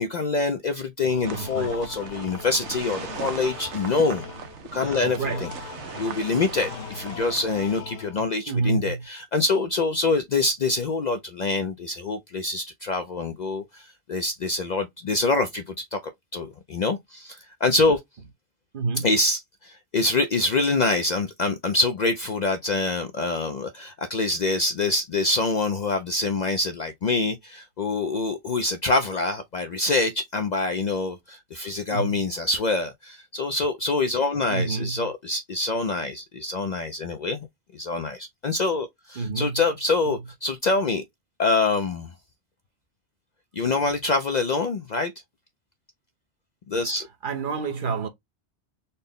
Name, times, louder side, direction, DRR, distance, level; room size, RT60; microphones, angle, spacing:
voice 1, 0.0-4.2 4.7-5.5 6.0-18.0 19.0-37.5 37.7-41.0 41.4-42.1 43.6-45.1 46.7-47.1, left 3 dB, 55° left, 0.5 m, -25 dB
sound 1, 1.1-8.5, left 7 dB, 75° left, 0.9 m, -40 dB
sound 2, 1.2-7.8, right 7 dB, 80° right, 1.0 m, -39 dB
voice 2, 1.3-1.8 5.0-5.4 8.5-9.0 18.7-19.1 31.9-32.2 34.5-35.1 39.2-39.6 40.1-40.2 43.8-43.9 46.8-46.9 47.2-48.1, right 4 dB, 55° right, 0.9 m, -28 dB
4.1 x 2.1 x 3.5 m
omnidirectional pair, 1.2 m